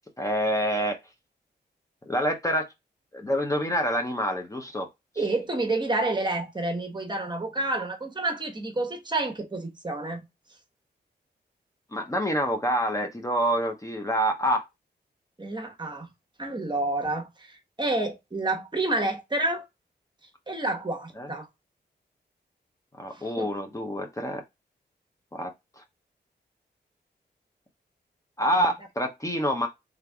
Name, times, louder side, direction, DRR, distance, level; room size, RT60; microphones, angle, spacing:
voice 1, 0.2-1.0 2.1-2.7 3.1-4.9 11.9-14.6 21.2-21.3 23.0-24.4 25.3-25.5 28.4-29.7, equal, 15° left, 1.0 m, -27 dB
voice 2, 5.2-10.2 15.4-16.1 16.4-17.5 17.8-19.6 20.5-21.5 23.1-23.5, right 2 dB, 25° right, 1.2 m, -29 dB
3.6 x 3.3 x 3.5 m
cardioid pair, 60°, 18 cm